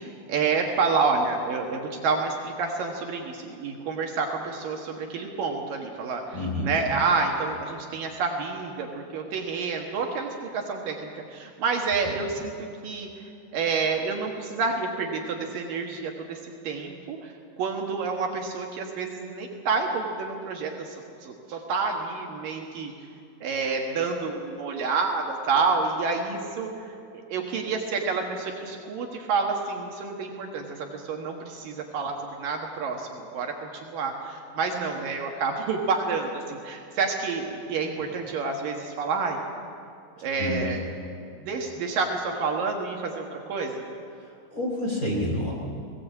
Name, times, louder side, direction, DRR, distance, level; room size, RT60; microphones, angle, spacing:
voice 1, 0.0-13.1 13.5-22.9 23.4-27.0 27.3-39.4 40.2-40.9 41.2-43.8, right 4 dB, 65° right, 2 dB, 2.9 m, -29 dB
voice 2, 6.3-6.7 12.0-12.1 40.4-40.6 44.2-45.5, left 1 dB, 20° left, -2 dB, 3.5 m, -29 dB
20.0 x 17.5 x 8.4 m, 2.4 s
omnidirectional pair, 4.5 m